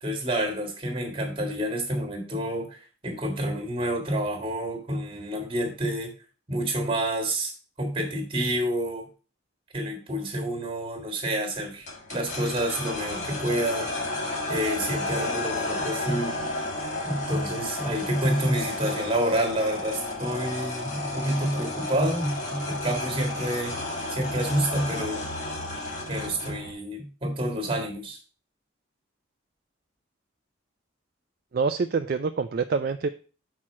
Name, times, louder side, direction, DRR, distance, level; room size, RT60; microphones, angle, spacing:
voice 1, 0.0-6.1 6.5-7.5 7.8-9.1 9.7-13.9 14.5-16.4 17.0-23.8 24.1-25.2 26.1-28.2, right 1 dB, 25° right, 3 dB, 1.8 m, -28 dB
sound 1, 11.9-26.7, left 2 dB, 35° left, 1.5 m, -32 dB
voice 2, 31.5-33.1, right 4 dB, 45° right, 8 dB, 0.3 m, -26 dB
6.3 x 4.4 x 6.0 m, 0.37 s
head